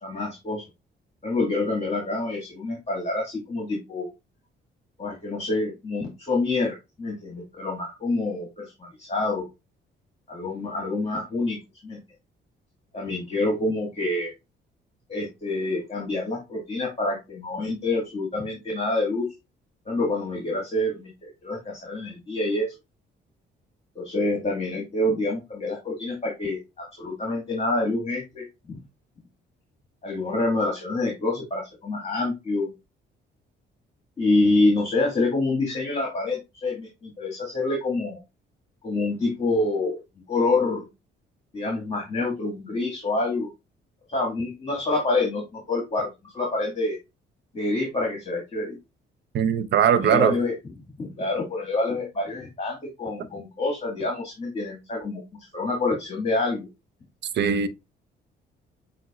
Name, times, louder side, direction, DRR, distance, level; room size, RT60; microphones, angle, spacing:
voice 1, 0.0-0.6 1.2-4.1 5.0-9.5 10.3-11.6 11.8-12.0 12.9-14.3 15.1-19.2 19.8-22.7 23.9-28.8 30.0-32.7 34.2-38.2 38.8-40.0 40.3-40.8 41.5-43.5 44.1-46.1 46.3-47.0 47.5-48.8 49.9-50.5 51.0-55.2 55.5-56.7, left 2 dB, 30° left, 1.8 m, -27 dB
voice 2, 49.3-50.4 57.3-57.7, right 8 dB, 60° right, 0.7 m, -20 dB
7.7 x 2.7 x 2.3 m
cardioid pair, 90°, 20 cm